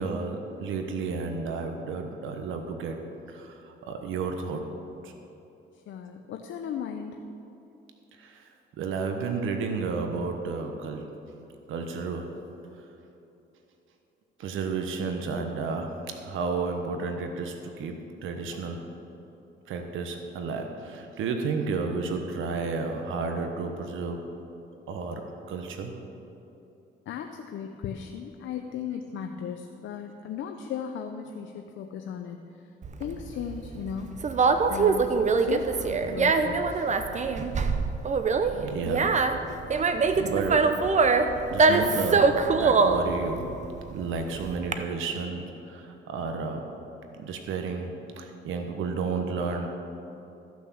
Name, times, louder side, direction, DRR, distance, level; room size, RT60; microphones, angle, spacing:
voice 1, 0.0-3.0 3.3-4.6 5.0-5.1 8.2-8.5 8.8-11.1 11.7-12.3 14.4-18.8 19.7-24.2 24.9-25.9 29.1-29.2 38.5-39.2 40.2-40.8 41.5-43.5 43.9-46.7 47.2-49.7, right 4 dB, 80° right, 5 dB, 1.1 m, -32 dB
voice 2, 5.9-7.2 27.1-32.4 33.0-34.2 34.7-35.2 35.4-36.9, left 7 dB, 75° left, 5 dB, 0.7 m, -36 dB
Conversation, 32.8-44.7, right 4 dB, 35° right, 0.8 m, -24 dB
14.0 x 6.2 x 7.1 m, 2.9 s
cardioid pair, 90°, 20 cm